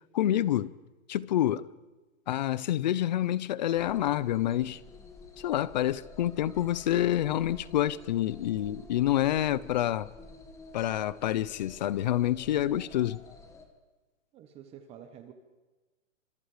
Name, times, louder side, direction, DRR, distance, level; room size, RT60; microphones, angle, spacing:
voice 1, 0.1-0.7 1.1-1.6 2.3-4.8 5.4-10.1 10.7-13.2, left 12 dB, 35° left, 0.6 m, -27 dB
sound 1, 3.7-13.7, left 3 dB, 5° left, 1.6 m, -50 dB
voice 2, 14.3-15.3, right 9 dB, 15° right, 1.2 m, -48 dB
27.0 x 26.0 x 5.0 m
hypercardioid pair, 165°, 40 cm